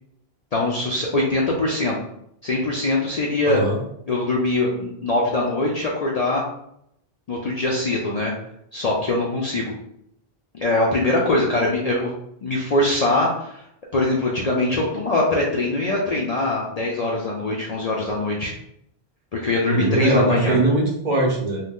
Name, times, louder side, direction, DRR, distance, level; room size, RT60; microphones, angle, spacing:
voice 1, 0.5-2.0 2.4-3.6 4.1-6.4 7.3-8.3 8.7-9.7 10.5-12.1 12.4-13.6 13.9-18.5 19.3-20.6, left 2 dB, 50° left, -3 dB, 0.5 m, -22 dB
voice 2, 3.4-3.8 19.7-21.6, right 2 dB, 50° right, -1 dB, 0.7 m, -21 dB
2.7 x 2.2 x 3.5 m, 0.74 s
omnidirectional pair, 1.1 m